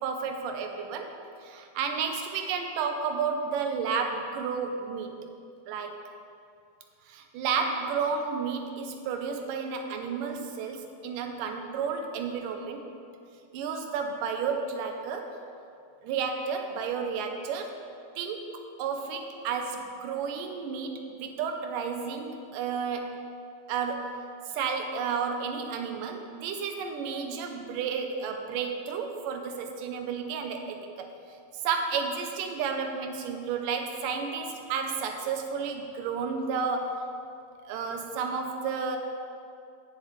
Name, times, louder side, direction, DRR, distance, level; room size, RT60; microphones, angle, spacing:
voice 1, 0.0-5.2 5.7-6.0 7.1-12.9 13.5-15.4 16.0-17.7 18.2-23.1 23.7-24.2 24.5-31.1 31.6-37.1 37.7-39.0, right 5 dB, 90° right, 4 dB, 2.4 m, -32 dB
16.5 x 7.4 x 3.2 m, 2.4 s
omnidirectional pair, 3.7 m